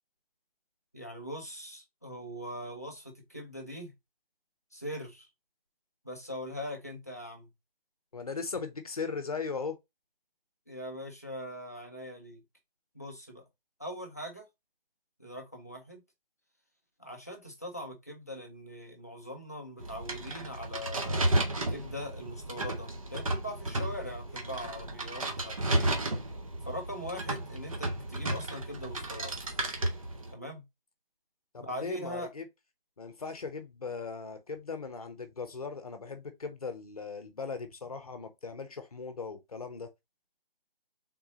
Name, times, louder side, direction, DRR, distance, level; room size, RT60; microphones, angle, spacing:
voice 1, 0.9-3.9 4.7-5.3 6.0-7.5 10.7-12.4 12.9-13.4 13.8-14.5 15.2-16.0 17.0-25.9 26.6-29.3 30.3-30.6 31.6-32.3, equal, 15° left, 0.5 m, -41 dB
voice 2, 8.1-9.8 31.5-32.5 33.0-39.9, left 5 dB, 40° left, 0.9 m, -38 dB
sound 1, 19.8-30.3, right 1 dB, 35° right, 0.9 m, -33 dB
4.6 x 3.8 x 2.8 m
figure-of-eight pair, 155°, 29 cm